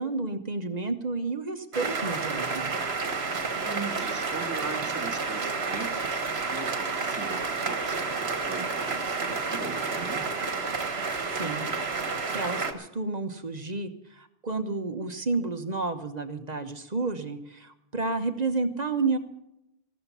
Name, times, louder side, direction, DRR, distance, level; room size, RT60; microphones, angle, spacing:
voice 1, 0.0-2.7 11.3-11.7 12.3-19.2, right 3 dB, 35° right, 8 dB, 1.2 m, -31 dB
sound 1, 1.7-12.7, right 4 dB, 55° right, 1.6 m, -30 dB
voice 2, 3.6-10.3, right 3 dB, 15° right, 4 dB, 1.6 m, -40 dB
15.0 x 13.5 x 5.6 m, 0.83 s
omnidirectional pair, 1.3 m